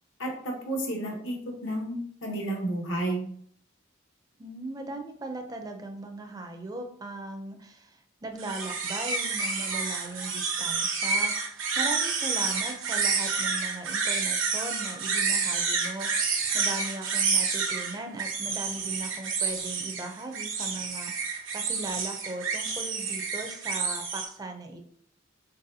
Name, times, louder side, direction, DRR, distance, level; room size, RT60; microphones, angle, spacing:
voice 1, 0.2-3.3, right 1 dB, 75° left, 1 dB, 1.1 m, -31 dB
voice 2, 4.4-24.9, right 2 dB, 20° right, 4 dB, 0.5 m, -38 dB
sound 1, 8.4-24.2, right 5 dB, 85° right, 1.0 m, -29 dB
4.1 x 4.0 x 2.7 m, 0.63 s
head